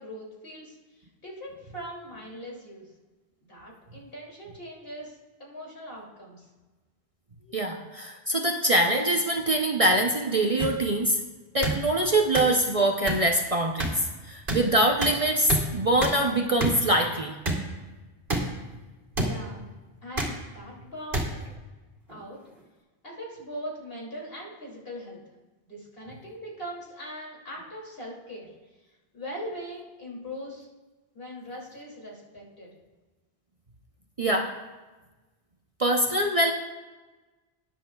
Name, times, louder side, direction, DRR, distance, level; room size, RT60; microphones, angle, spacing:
voice 1, 0.0-2.9 3.4-6.5 19.2-19.7 20.0-21.4 22.1-22.4 23.0-25.2 25.7-28.5 28.8-30.7 31.1-32.8, equal, 60° left, -3 dB, 3.1 m, -41 dB
voice 2, 7.5-11.2 11.5-17.3 34.2-34.5 35.8-36.5, right 1 dB, 35° right, 1 dB, 0.8 m, -24 dB
sound 1, 10.6-10.7 11.6-11.8 12.3-12.4 13.1-13.2 13.8-13.9 14.5-14.6 15.0-15.1 15.5-15.6 16.0-16.1 16.6-16.7 17.4-17.6 18.3-18.4 19.1-19.3 20.2-20.3 21.1-21.2 22.1-22.2, right 2 dB, 55° right, 2.4 m, -27 dB
20.5 x 10.0 x 2.4 m, 1.2 s
omnidirectional pair, 1.1 m